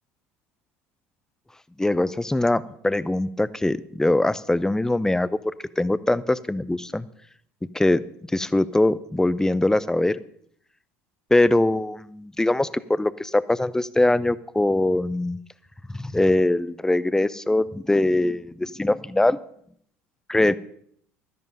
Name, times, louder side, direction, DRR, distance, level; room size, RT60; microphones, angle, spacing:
voice 1, 1.8-5.4 5.8-7.1 7.7-8.0 8.3-10.2 11.3-15.4 15.9-19.4 20.3-20.5, left 1 dB, 5° left, 17 dB, 0.6 m, -22 dB
12.5 x 11.0 x 5.4 m, 0.66 s
hypercardioid pair, 70°, 8 cm